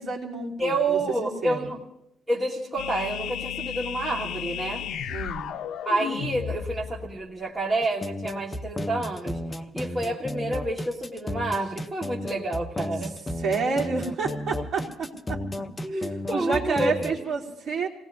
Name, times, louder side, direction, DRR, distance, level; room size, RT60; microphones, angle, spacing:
voice 1, 0.0-1.7 5.1-5.5 13.0-13.1 13.4-15.6 15.9-17.9, right 4 dB, 55° right, -2 dB, 2.9 m, -30 dB
voice 2, 0.6-1.8 2.3-4.9 5.8-9.4 9.7-13.2 15.8-17.1, right 2 dB, 15° right, -4 dB, 1.4 m, -29 dB
sound 1, 2.8-7.4, left 9 dB, 70° left, 0.5 m, -33 dB
sound 2, 7.8-17.1, left 1 dB, 15° left, 0.5 m, -33 dB
28.0 x 18.0 x 2.6 m, 0.84 s
cardioid pair, 175°, 0 cm